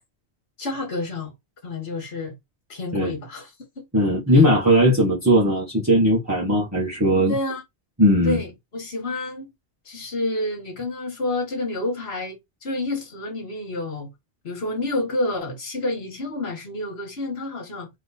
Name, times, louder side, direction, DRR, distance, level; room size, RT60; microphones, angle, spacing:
voice 1, 0.6-1.3 1.6-2.3 2.7-3.5 4.3-4.4 7.3-7.6 8.2-9.5 9.9-14.1 14.4-17.9, left 2 dB, 65° left, 1.8 m, -29 dB
voice 2, 3.9-7.3 8.0-8.4, equal, 15° right, 1.3 m, -18 dB
3.5 x 3.1 x 4.1 m
omnidirectional pair, 1.1 m